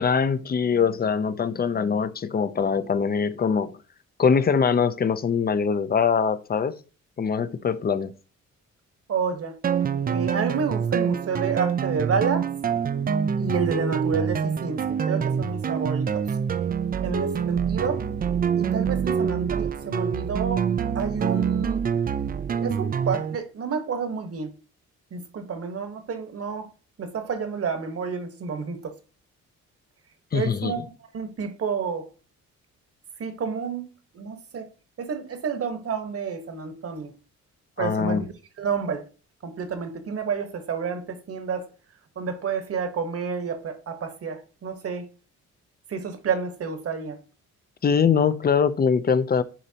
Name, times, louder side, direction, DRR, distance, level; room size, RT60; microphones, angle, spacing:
voice 1, 0.0-3.8 4.2-6.8 7.2-8.1 30.3-30.7 37.8-38.3 47.8-49.4, left 6 dB, 30° left, 0.6 m, -23 dB
voice 2, 9.1-9.6 10.1-12.5 13.4-16.3 17.0-18.0 18.6-20.7 20.9-21.8 22.6-24.5 25.1-26.7 27.0-28.9 30.3-30.8 31.1-32.1 33.2-33.9 34.1-34.7 35.0-37.1 37.8-38.3 38.6-39.0 39.4-41.7 42.1-45.0 45.9-47.2, right 5 dB, 50° right, 1.3 m, -29 dB
sound 1, 9.6-23.4, right 7 dB, 30° right, 0.4 m, -26 dB
10.0 x 4.0 x 2.8 m
cardioid pair, 90°, 30 cm